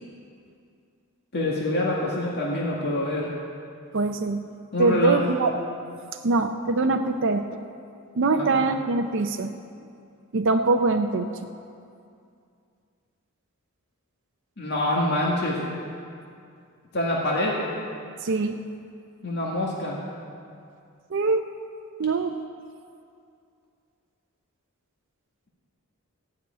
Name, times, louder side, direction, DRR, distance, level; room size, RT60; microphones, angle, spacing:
voice 1, 1.3-3.3 4.7-5.2 8.3-8.6 14.6-15.6 16.9-17.5 19.2-20.0, left 1 dB, 50° left, -4 dB, 1.9 m, -25 dB
voice 2, 3.9-4.4 4.8-5.5 6.2-7.5 8.2-9.5 10.3-11.3 18.2-18.6 21.1-21.4 22.0-22.3, right 3 dB, 60° right, 5 dB, 0.5 m, -23 dB
15.5 x 6.3 x 9.1 m, 2.4 s
head